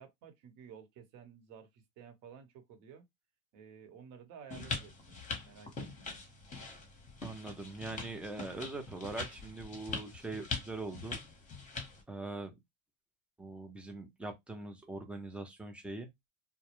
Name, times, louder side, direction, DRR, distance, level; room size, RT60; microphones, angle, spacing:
voice 1, 0.0-3.0 3.5-6.1, right 7 dB, 50° right, 1.0 m, -54 dB
sound 1, 4.5-12.0, left 4 dB, 20° left, 0.8 m, -42 dB
voice 2, 7.2-11.2 12.1-12.5 13.4-16.1, right 2 dB, 5° right, 0.4 m, -42 dB
2.2 x 2.1 x 2.9 m
supercardioid pair, 115°, 40 cm